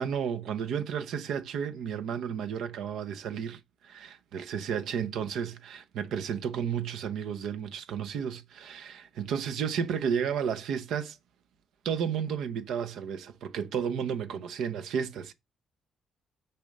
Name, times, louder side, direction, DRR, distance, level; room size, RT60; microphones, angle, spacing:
voice 1, 0.0-11.2 11.8-15.3, right 7 dB, 80° right, 0.8 m, -32 dB
6.7 x 4.4 x 6.5 m
cardioid pair, 90°, 0 cm